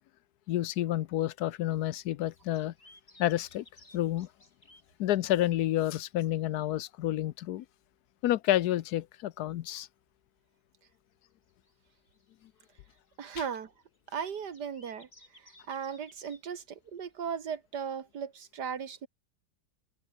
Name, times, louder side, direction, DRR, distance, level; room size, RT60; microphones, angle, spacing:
voice 1, 0.5-2.7 3.2-3.6 3.9-4.3 5.0-7.6 8.2-9.9, left 13 dB, 75° left, 1.2 m, -29 dB
sound 1, 1.4-7.2 7.5-7.6 7.9-8.0 8.2-8.3 8.9-9.8 10.1-10.2 10.9-17.5, left 1 dB, 30° left, 6.4 m, -62 dB
voice 2, 13.2-13.7 14.1-15.1 15.4-19.1, right 7 dB, 75° right, 2.2 m, -37 dB
open air
omnidirectional pair, 1.8 m